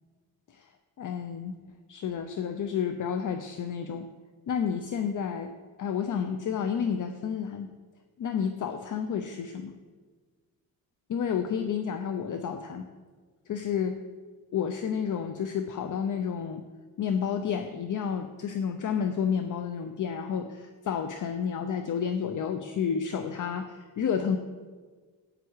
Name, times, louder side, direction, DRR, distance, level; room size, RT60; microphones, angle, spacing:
voice 1, 1.0-1.6 1.9-4.1 4.5-5.5 5.8-7.7 8.2-9.7 11.1-12.9 13.5-14.0 14.5-16.7 17.0-24.4, left 7 dB, 55° left, 7 dB, 0.8 m, -30 dB
15.0 x 9.2 x 4.8 m, 1.5 s
cardioid pair, 110°, 38 cm